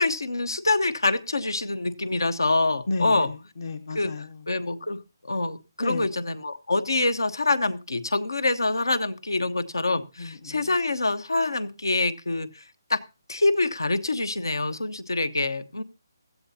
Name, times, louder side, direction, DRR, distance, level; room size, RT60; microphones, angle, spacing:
voice 1, 0.0-3.3 3.9-4.1 4.5-5.0 5.2-12.6 12.9-13.0 13.3-15.8, left 2 dB, 90° left, 13 dB, 1.1 m, -25 dB
voice 2, 2.9-4.4 5.8-6.1 10.2-10.7, left 3 dB, 65° left, 7 dB, 1.0 m, -32 dB
16.5 x 13.0 x 2.8 m, 0.29 s
figure-of-eight pair, 150°, 2 cm